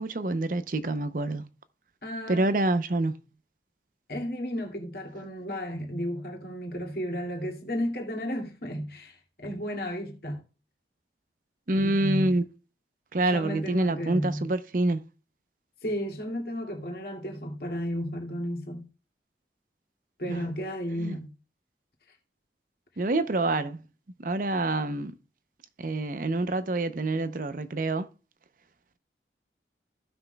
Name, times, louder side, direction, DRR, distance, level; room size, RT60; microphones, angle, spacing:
voice 1, 0.0-1.4 2.3-3.2 11.7-12.4 13.1-15.0 20.3-20.5 21.0-21.2 23.0-23.8 24.2-25.1 25.8-28.1, right 2 dB, 50° right, 0.6 m, -27 dB
voice 2, 2.0-2.5 4.1-10.4 11.7-12.3 13.3-14.5 15.8-18.9 20.2-21.3, equal, 55° left, 2.3 m, -33 dB
16.0 x 6.1 x 2.2 m
head